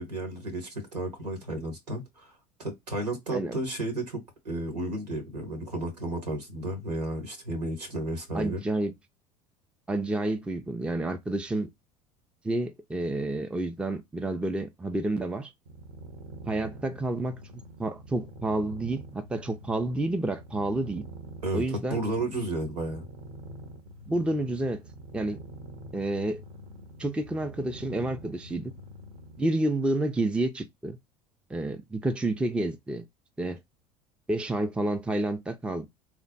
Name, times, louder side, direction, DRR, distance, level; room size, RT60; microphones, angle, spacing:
voice 1, 0.0-2.3 2.6-8.6 21.4-23.1, right 2 dB, 85° right, 1.5 m, -33 dB
voice 2, 8.3-8.9 9.9-11.7 12.4-15.5 16.5-17.4 17.8-21.0 21.5-22.0 24.1-24.8 25.1-25.4 25.9-26.4 27.0-28.7 29.4-31.0 31.5-33.0 33.4-33.6 34.3-35.9, right 2 dB, 5° right, 0.5 m, -29 dB
sound 1, 15.7-29.5, right 2 dB, 65° right, 1.2 m, -46 dB
3.4 x 2.0 x 3.8 m
hypercardioid pair, 70°, 20 cm